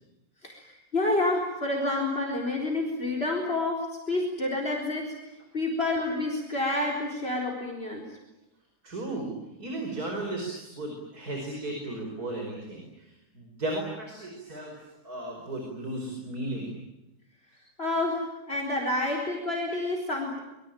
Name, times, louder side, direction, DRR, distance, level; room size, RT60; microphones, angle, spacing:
voice 1, 0.4-5.1 5.5-8.0 17.8-20.4, left 2 dB, 35° left, 1 dB, 4.3 m, -29 dB
voice 2, 8.8-14.8 15.0-16.7, right 2 dB, 65° right, 2 dB, 5.4 m, -35 dB
26.0 x 23.5 x 9.1 m, 0.95 s
omnidirectional pair, 1.7 m